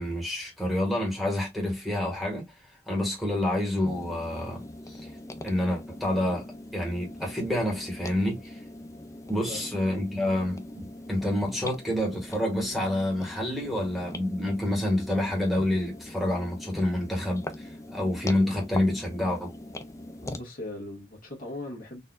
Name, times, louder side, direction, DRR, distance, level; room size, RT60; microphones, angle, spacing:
voice 1, 0.0-2.4 2.9-5.0 5.4-6.4 6.7-8.6 9.3-19.5, left 1 dB, ahead, 1.4 m, -28 dB
sound 1, 3.8-20.4, left 1 dB, 15° left, 0.4 m, -42 dB
voice 2, 9.3-9.7 20.2-22.0, left 2 dB, 50° left, 1.5 m, -39 dB
4.0 x 2.6 x 2.3 m
head